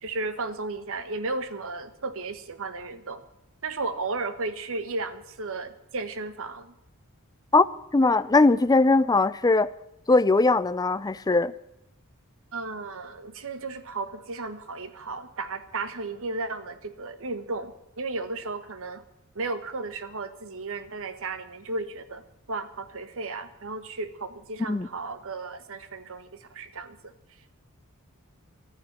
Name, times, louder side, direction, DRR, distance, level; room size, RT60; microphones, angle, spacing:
voice 1, 0.0-3.2 3.6-6.7 12.5-19.0 19.3-22.2 22.5-27.1, right 3 dB, 65° right, 1.3 m, -34 dB
voice 2, 7.9-9.7 10.1-11.5 24.7-24.9, left 3 dB, 15° left, 0.5 m, -20 dB
13.0 x 9.9 x 9.5 m
head